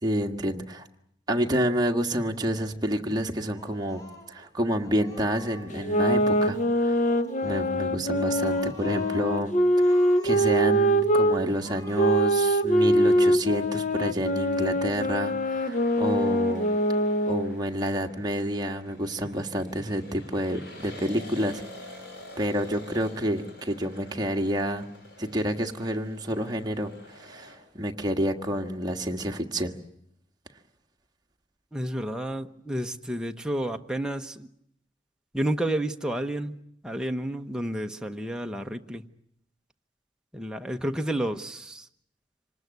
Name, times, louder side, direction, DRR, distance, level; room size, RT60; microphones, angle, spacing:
voice 1, 0.0-0.9 1.3-4.0 4.3-7.1 7.4-9.5 9.8-9.9 10.2-16.7 17.3-21.6 22.4-24.8 25.2-29.7, equal, 25° right, 3 dB, 1.6 m, -29 dB
Speech, 3.5-4.5 4.8-5.9 6.3-6.8 7.0-7.9 8.1-9.3 9.7-10.8 11.2-11.3 11.6-12.6, left 2 dB, 20° left, 4.5 m, -48 dB
sound 1, 5.7-11.4 11.9-17.5, equal, 45° left, 1.2 m, -23 dB
sound 2, 14.1-27.6, left 1 dB, 65° left, 6.0 m, -48 dB
voice 2, 31.7-34.5 35.3-36.6 36.8-39.0 40.3-41.9, right 1 dB, 5° right, 4 dB, 1.0 m, -30 dB
26.0 x 19.5 x 9.5 m, 0.74 s
head